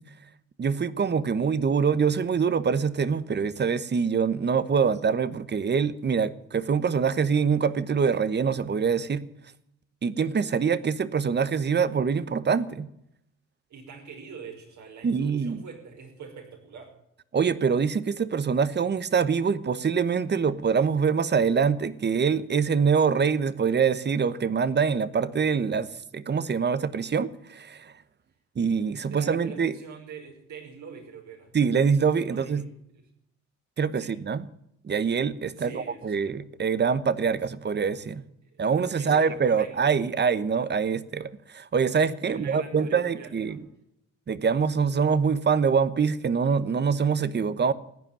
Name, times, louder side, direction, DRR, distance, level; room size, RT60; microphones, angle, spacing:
voice 1, 0.6-9.2 10.0-12.9 15.0-15.6 17.3-27.9 28.6-29.7 31.5-32.6 33.8-34.5 34.8-38.2 38.6-43.6 44.3-47.7, right 6 dB, 35° right, 1.1 m, -24 dB
voice 2, 13.7-16.9 26.3-26.4 29.1-31.5 32.3-32.7 32.9-33.0 34.0-34.2 35.5-36.2 38.4-38.6 38.9-39.8 42.2-43.6, right 6 dB, 70° right, 5.6 m, -44 dB
15.5 x 10.0 x 9.2 m
cardioid pair, 90°, 30 cm